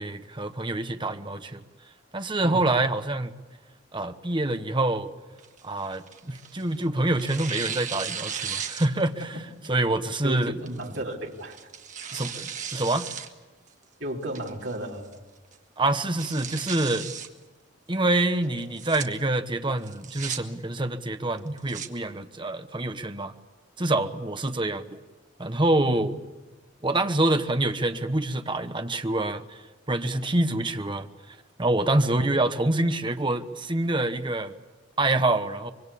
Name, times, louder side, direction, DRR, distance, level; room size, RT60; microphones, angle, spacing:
voice 1, 0.0-1.6 2.1-3.3 3.9-5.1 5.6-9.3 9.7-10.6 12.1-13.1 15.8-17.1 17.9-23.3 23.8-25.0 25.4-26.1 26.8-29.6 29.9-31.1 31.6-34.5 35.0-35.7, right 2 dB, 25° right, 8 dB, 1.1 m, -26 dB
Tearing, 5.4-6.7 7.2-9.2 9.6-9.7 10.7-11.0 11.5-13.3 13.7-13.8 14.3-14.8 15.1-15.2 15.5-15.6 16.0-17.3 18.6-19.0 19.8-20.4 21.4-21.9, right 7 dB, 40° right, 1.7 m, -35 dB
voice 2, 10.2-11.6 14.0-15.2 25.8-26.1 32.0-32.4, right 1 dB, 70° right, 0 dB, 3.5 m, -34 dB
25.0 x 23.5 x 8.5 m, 1.2 s
head